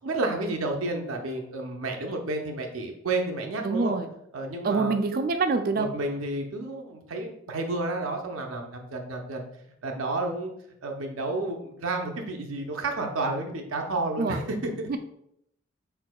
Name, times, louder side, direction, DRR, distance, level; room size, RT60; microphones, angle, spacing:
voice 1, 0.0-3.9 4.3-5.0 5.8-9.5 9.8-10.5 10.8-14.9, right 2 dB, 85° right, 3 dB, 0.7 m, -31 dB
voice 2, 3.6-4.1 4.6-5.9 14.2-14.4 14.9-15.0, right 4 dB, 45° right, 8 dB, 0.3 m, -25 dB
4.6 x 4.2 x 2.3 m, 0.75 s
head